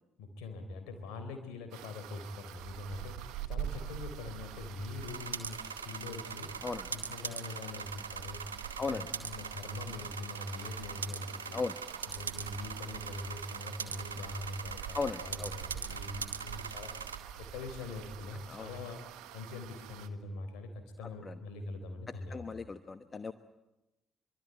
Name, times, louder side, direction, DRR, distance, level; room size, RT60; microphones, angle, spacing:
voice 1, 0.2-6.5 6.9-8.5 8.8-11.6 12.2-19.0 19.3-22.6, left 3 dB, 65° left, 7 dB, 3.9 m, -43 dB
sound 1, 1.7-20.1, right 10 dB, 65° right, 1.4 m, -46 dB
sound 2, 5.0-17.2, right 6 dB, 85° right, 1.0 m, -42 dB
voice 2, 14.9-15.5 18.5-18.7 21.3-21.4 22.3-23.3, left 4 dB, 30° left, 12 dB, 1.1 m, -36 dB
24.5 x 24.0 x 9.3 m, 0.99 s
figure-of-eight pair, 45°, 0 cm